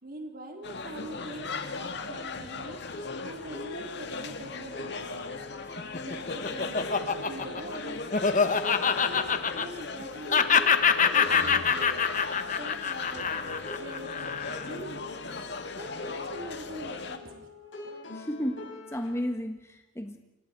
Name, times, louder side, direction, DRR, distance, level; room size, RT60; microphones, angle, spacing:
voice 1, 0.0-6.8 7.3-8.0 8.3-12.1 12.5-15.3 15.8-17.5, right 1 dB, 50° right, 2 dB, 4.1 m, -44 dB
sound 1, 0.6-17.2, left 3 dB, 65° left, 2.0 m, -38 dB
sound 2, 2.9-19.3, left 3 dB, 80° left, 6.6 m, -44 dB
Laughter, 5.8-10.0 10.3-14.8, left 6 dB, 40° left, 1.3 m, -25 dB
voice 2, 18.1-20.2, equal, 15° left, 5 dB, 1.5 m, -33 dB
29.0 x 26.0 x 4.7 m, 0.92 s
head